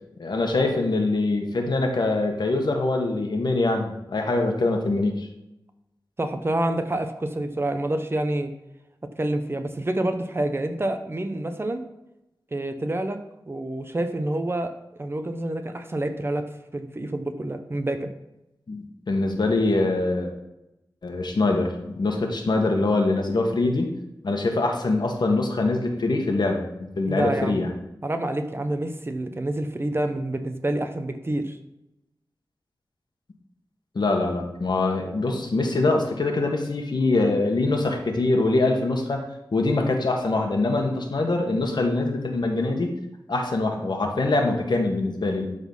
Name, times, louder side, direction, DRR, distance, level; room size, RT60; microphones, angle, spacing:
voice 1, 0.2-5.3 18.7-20.3 21.0-23.9 24.2-26.6 27.0-27.7 33.9-39.2 39.5-42.9 43.3-45.5, left 2 dB, 65° left, 2 dB, 1.5 m, -23 dB
voice 2, 6.2-8.5 9.2-11.8 12.5-13.2 13.5-14.7 15.0-16.5 16.7-18.1 27.1-27.6 28.0-31.6, right 1 dB, 30° right, 7 dB, 0.9 m, -27 dB
12.0 x 4.1 x 5.5 m, 0.90 s
wide cardioid pair, 100°, 8 cm